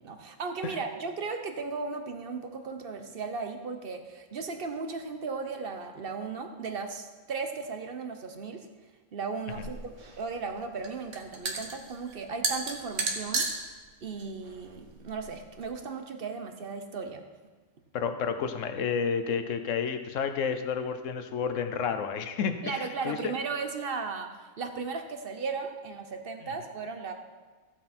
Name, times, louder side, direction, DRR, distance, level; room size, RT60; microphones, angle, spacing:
voice 1, 0.0-8.6 9.1-13.5 14.0-17.2 22.6-24.3 24.6-27.1, right 4 dB, 45° right, 6 dB, 1.1 m, -36 dB
sound 1, 9.5-15.7, right 3 dB, 65° right, 1.6 m, -35 dB
voice 2, 17.9-23.3 26.4-26.5, left 6 dB, 70° left, 8 dB, 1.2 m, -31 dB
14.5 x 7.7 x 4.4 m, 1.3 s
omnidirectional pair, 1.4 m